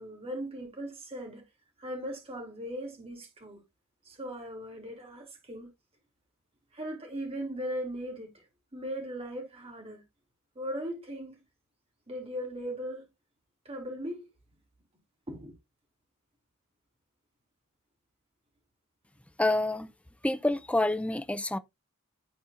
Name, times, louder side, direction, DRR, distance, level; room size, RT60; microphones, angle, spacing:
voice 1, 0.0-1.4 1.8-3.6 4.0-5.7 6.7-8.5 8.7-10.0 10.5-11.4 12.1-13.0 13.6-14.3 15.3-15.5, equal, 30° right, 2.9 m, -38 dB
voice 2, 19.4-19.9 20.2-21.6, left 1 dB, 5° left, 0.5 m, -27 dB
12.5 x 4.3 x 2.5 m
head